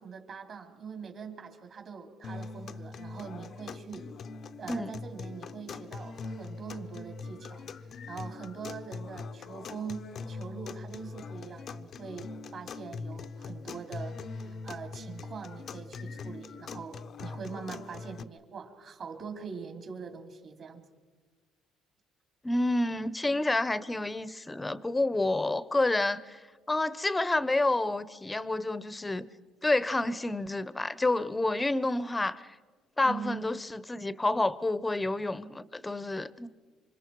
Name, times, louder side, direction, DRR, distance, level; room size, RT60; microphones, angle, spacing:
voice 1, 0.0-4.1 4.6-20.8 33.0-33.4, right 6 dB, 50° right, 3.2 m, -43 dB
sound 1, 2.2-18.2, left 4 dB, 45° left, 0.6 m, -42 dB
voice 2, 22.4-26.4 26.7-29.3 29.6-32.5 33.0-36.5, left 2 dB, 15° left, 0.8 m, -29 dB
27.5 x 25.0 x 4.7 m
cardioid pair, 115°, 0 cm